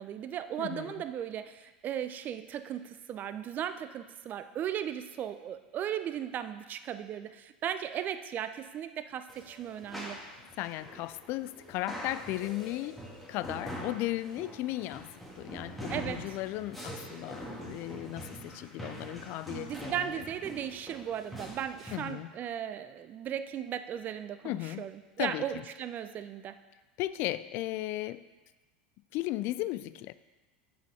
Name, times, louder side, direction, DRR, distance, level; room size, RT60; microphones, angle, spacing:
voice 1, 0.0-10.2 15.9-16.2 19.5-26.6, right 9 dB, 40° right, 11 dB, 0.5 m, -36 dB
voice 2, 0.6-1.0 10.6-13.0 13.3-20.2 21.9-22.3 24.4-24.9 25.2-25.6 27.0-28.3 29.1-30.1, left 16 dB, 50° left, 15 dB, 0.3 m, -36 dB
sound 1, 9.3-22.1, equal, ahead, 1.7 m, -44 dB
7.9 x 5.5 x 4.2 m, 1.2 s
hypercardioid pair, 90°, 5 cm